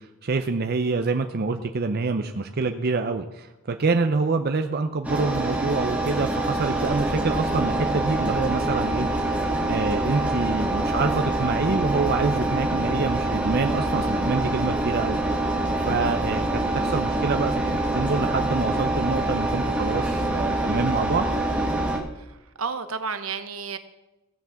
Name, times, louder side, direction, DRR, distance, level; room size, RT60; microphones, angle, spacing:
voice 1, 0.0-9.1 9.7-15.2 15.5-15.6 15.8-21.3, right 4 dB, 50° right, 6 dB, 0.6 m, -26 dB
Engine, 5.0-22.0, right 1 dB, 5° right, 1.6 m, -25 dB
voice 2, 22.2-23.8, right 5 dB, 75° right, 10 dB, 1.0 m, -32 dB
16.0 x 5.9 x 7.0 m, 1.0 s
head